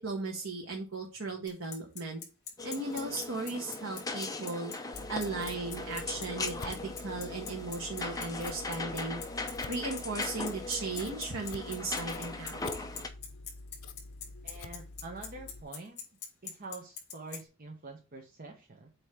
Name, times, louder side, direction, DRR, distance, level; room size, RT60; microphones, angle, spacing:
voice 1, 0.0-2.2 2.6-4.7 5.1-9.2 9.7-12.6, right 3 dB, 65° right, -1 dB, 1.5 m, -36 dB
Bicycle, 1.5-17.4, left 8 dB, 50° left, 3.6 m, -41 dB
sound 1, 2.6-13.1, left 3 dB, 15° left, 0.9 m, -39 dB
Scissors, 4.9-15.6, left 2 dB, 70° left, 0.9 m, -47 dB
voice 2, 14.4-16.0 16.4-18.9, right 3 dB, 45° right, 2 dB, 1.1 m, -46 dB
8.0 x 3.1 x 6.0 m, 0.30 s
head